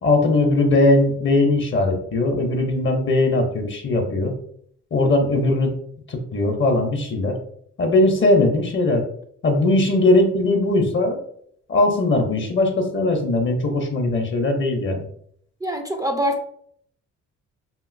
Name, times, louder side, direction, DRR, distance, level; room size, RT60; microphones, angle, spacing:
voice 1, 0.0-4.3 4.9-5.7 6.1-7.4 7.8-9.0 9.4-11.2 11.7-15.0, left 2 dB, 40° left, 4 dB, 0.6 m, -19 dB
voice 2, 15.6-16.4, equal, 15° right, 4 dB, 0.3 m, -24 dB
2.9 x 2.6 x 2.5 m, 0.64 s
cardioid pair, 90°, 30 cm